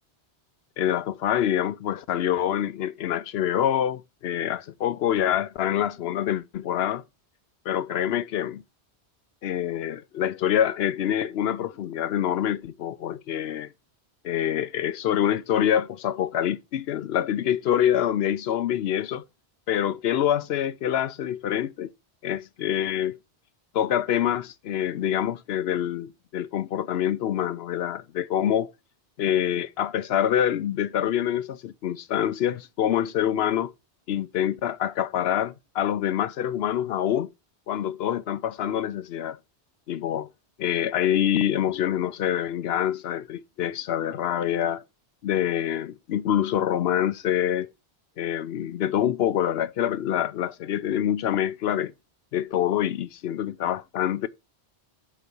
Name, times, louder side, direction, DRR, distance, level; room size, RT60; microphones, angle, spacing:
voice 1, 0.8-7.0 7.7-8.6 9.4-13.7 14.2-19.2 19.7-21.9 22.2-23.2 23.7-28.7 29.2-33.7 34.1-37.3 37.7-39.4 39.9-40.3 40.6-44.8 45.2-47.7 48.2-51.9 52.3-54.3, left 10 dB, 70° left, 0.8 m, -26 dB
8.3 x 4.1 x 6.9 m
omnidirectional pair, 1.1 m